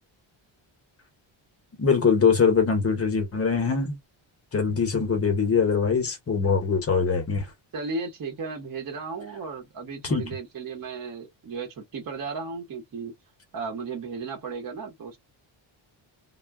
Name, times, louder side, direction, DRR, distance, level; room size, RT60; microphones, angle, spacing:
voice 1, 1.8-4.0 4.5-7.5 10.1-10.2, left 5 dB, 30° left, 0.9 m, -22 dB
voice 2, 7.7-13.1 13.5-15.2, right 4 dB, 45° right, 1.1 m, -35 dB
2.3 x 2.2 x 3.4 m
wide cardioid pair, 180°, 49 cm